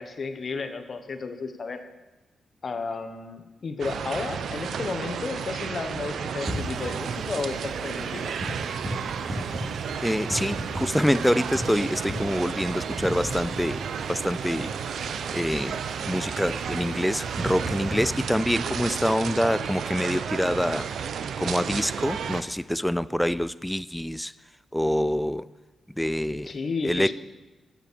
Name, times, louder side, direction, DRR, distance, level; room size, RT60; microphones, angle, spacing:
voice 1, 0.0-1.8 2.6-8.3 26.4-27.1, left 4 dB, 40° left, 8 dB, 1.2 m, -33 dB
sound 1, 3.8-22.4, right 7 dB, 75° right, 0.6 m, -32 dB
sound 2, 6.4-18.2, equal, 15° right, 4.1 m, -37 dB
voice 2, 10.0-13.8 14.1-14.7 15.3-21.0 21.4-24.3 24.7-25.5 26.0-26.5 26.8-27.1, equal, 5° left, 17 dB, 0.3 m, -26 dB
14.0 x 8.4 x 6.8 m, 1.1 s
wide cardioid pair, 130°, 0 cm